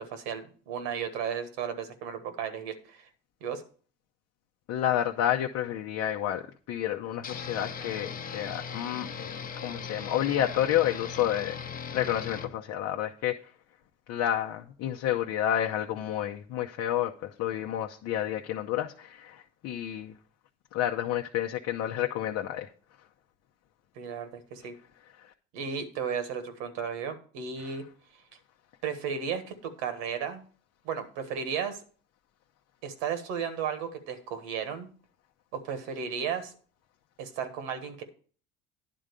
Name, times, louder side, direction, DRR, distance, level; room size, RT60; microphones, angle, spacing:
voice 1, 0.0-3.1 3.4-3.6 23.9-24.7 25.5-27.8 28.8-30.4 30.8-31.8 32.8-34.9 35.5-36.5 37.2-38.0, right 7 dB, 85° right, 8 dB, 1.4 m, -34 dB
voice 2, 4.7-9.3 9.6-11.6 11.9-13.4 14.1-20.1 20.7-22.7 27.6-27.7, left 11 dB, 60° left, 2 dB, 0.7 m, -30 dB
sound 1, 7.2-12.5, left 6 dB, 30° left, 0.8 m, -39 dB
10.0 x 3.8 x 6.7 m, 0.42 s
supercardioid pair, 100°, 29 cm